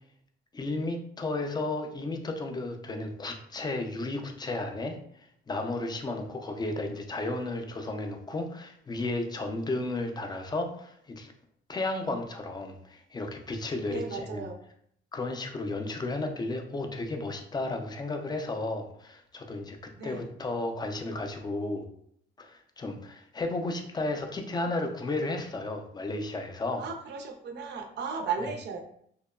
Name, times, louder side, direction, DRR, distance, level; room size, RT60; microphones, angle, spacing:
voice 1, 0.5-11.3 11.7-14.5 15.1-19.8 20.0-21.9 22.4-26.9, left 2 dB, 20° left, 4 dB, 0.4 m, -33 dB
voice 2, 13.9-14.6 20.0-20.2 26.8-28.8, right 5 dB, 60° right, 5 dB, 0.5 m, -35 dB
2.8 x 2.2 x 2.2 m, 0.67 s
cardioid pair, 90°, 20 cm